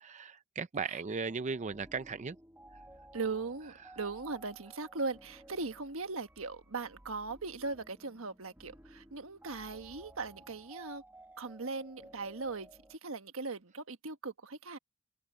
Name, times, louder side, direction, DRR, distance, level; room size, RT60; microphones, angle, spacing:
voice 1, 0.0-2.4 3.8-3.9, right 5 dB, 35° right, 0.5 m, -37 dB
sound 1, 1.2-13.0, right 1 dB, 10° right, 1.5 m, -56 dB
voice 2, 3.1-11.0 11.4-14.8, right 3 dB, 75° right, 1.4 m, -39 dB
head